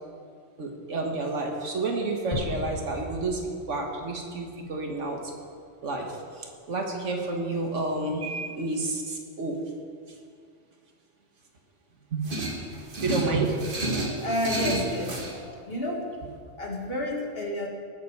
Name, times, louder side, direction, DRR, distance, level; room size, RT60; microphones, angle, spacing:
voice 1, 0.6-3.4 3.7-5.3 5.8-9.6 12.1-12.3 12.9-13.6, right 3 dB, 75° right, 2 dB, 1.8 m, -30 dB
sound 1, 2.3-4.7, left 1 dB, 30° left, 2.8 m, -37 dB
sound 2, 12.2-15.3, right 2 dB, 45° right, 1.6 m, -31 dB
voice 2, 14.2-16.1 16.6-17.7, left 1 dB, 50° left, -1 dB, 2.1 m, -30 dB
19.5 x 8.3 x 4.8 m, 2.2 s
omnidirectional pair, 1.3 m